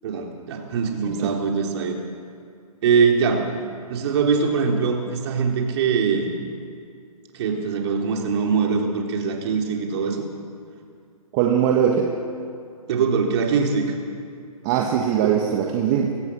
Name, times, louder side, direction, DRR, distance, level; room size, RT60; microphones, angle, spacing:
voice 1, 0.0-2.0 2.8-3.6 3.9-6.3 7.3-10.3 12.9-13.8 15.2-15.3, right 5 dB, 45° right, 1 dB, 3.8 m, -22 dB
voice 2, 11.3-12.1 14.6-16.1, right 8 dB, 30° right, 1 dB, 1.7 m, -21 dB
23.5 x 18.0 x 6.5 m, 2.4 s
hypercardioid pair, 135°, 19 cm